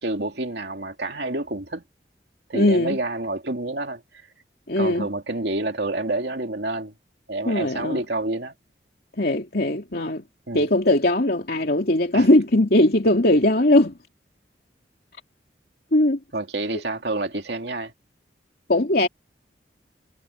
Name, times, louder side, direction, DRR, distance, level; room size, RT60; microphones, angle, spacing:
voice 1, 0.0-1.8 2.5-4.0 4.8-6.9 7.3-8.5 10.5-10.7 12.1-12.3 16.3-17.9, right 2 dB, 65° right, 2.8 m, -28 dB
voice 2, 2.5-3.0 4.7-5.1 7.5-8.0 9.2-10.2 10.5-14.0 15.9-16.2 18.7-19.1, left 1 dB, 60° left, 2.7 m, -19 dB
head